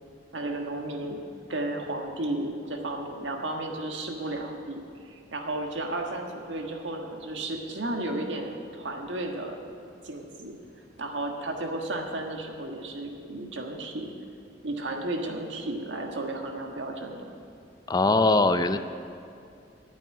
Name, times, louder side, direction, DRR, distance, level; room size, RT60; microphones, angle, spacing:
voice 1, 0.3-1.2 1.5-9.6 10.0-10.5 11.0-14.1 14.6-17.3, right 2 dB, 85° right, 2 dB, 1.5 m, -33 dB
voice 2, 17.9-18.8, left 2 dB, 20° left, 10 dB, 0.4 m, -21 dB
9.2 x 8.4 x 9.6 m, 2.4 s
head